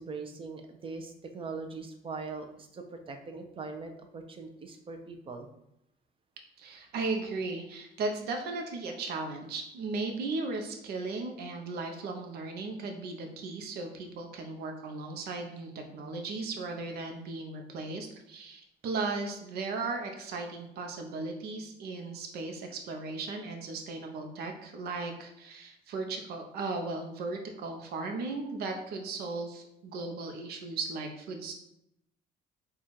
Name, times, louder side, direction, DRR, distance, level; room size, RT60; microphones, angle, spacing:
voice 1, 0.0-5.5, right 4 dB, 30° right, 5 dB, 0.7 m, -41 dB
voice 2, 6.6-31.5, right 3 dB, 70° right, 3 dB, 0.7 m, -36 dB
4.0 x 2.4 x 4.6 m, 0.83 s
cardioid pair, 110°, 17 cm